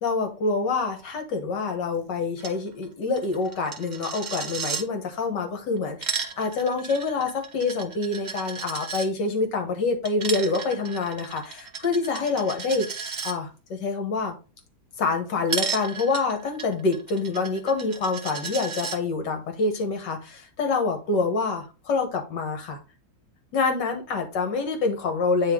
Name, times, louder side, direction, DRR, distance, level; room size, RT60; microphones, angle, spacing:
voice 1, 0.0-12.9 13.2-14.4 15.0-22.8 23.5-25.5, left 3 dB, 65° left, 1.8 m, -26 dB
Coin (dropping), 2.4-2.6 2.8-2.9 3.2-4.8 5.8-9.1 10.0-13.3 15.5-19.0, right 5 dB, 80° right, 0.4 m, -34 dB
8.9 x 3.7 x 3.6 m
omnidirectional pair, 2.1 m